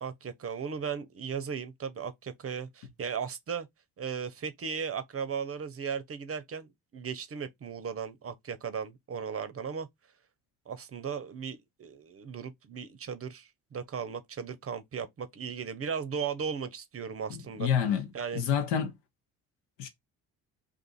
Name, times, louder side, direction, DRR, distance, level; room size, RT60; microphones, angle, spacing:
voice 1, 0.0-3.7 4.0-9.9 10.7-17.7 18.1-18.4, right 6 dB, 35° right, 0.7 m, -36 dB
voice 2, 17.3-18.9 19.8-19.9, left 8 dB, 80° left, 0.9 m, -29 dB
2.5 x 2.5 x 3.9 m
hypercardioid pair, 55°, 40 cm